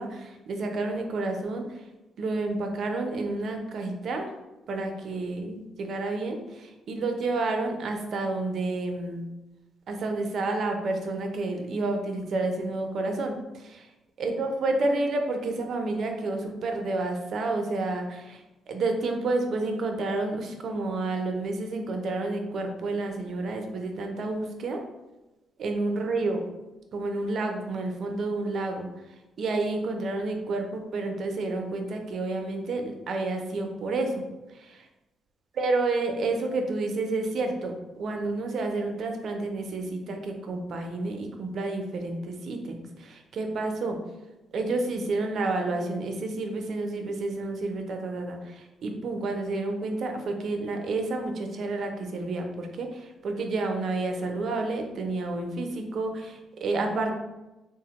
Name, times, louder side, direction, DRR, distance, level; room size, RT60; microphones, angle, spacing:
voice 1, 0.0-1.6 2.2-4.3 4.7-9.2 9.9-13.9 14.2-24.8 25.6-26.4 26.9-28.9 29.4-34.3 34.5-34.9 35.6-44.0 44.5-57.1, right 2 dB, 60° right, 4 dB, 0.5 m, -30 dB
3.2 x 2.1 x 2.9 m, 1.0 s
cardioid pair, 90°, 0 cm